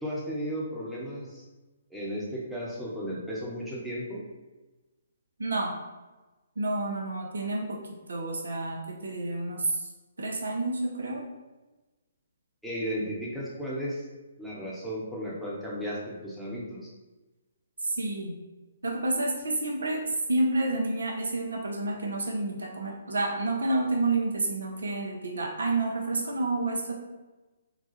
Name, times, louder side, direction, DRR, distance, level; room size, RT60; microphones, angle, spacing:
voice 1, 0.0-1.4 1.9-4.3 12.6-14.0 14.4-16.9, equal, ahead, -7 dB, 1.0 m, -34 dB
voice 2, 5.4-5.7 6.6-7.8 8.1-9.9 10.2-11.2 17.8-18.3 18.8-26.9, right 2 dB, 75° right, 0 dB, 0.7 m, -29 dB
4.1 x 2.3 x 4.1 m, 1.1 s
figure-of-eight pair, 130°, 0 cm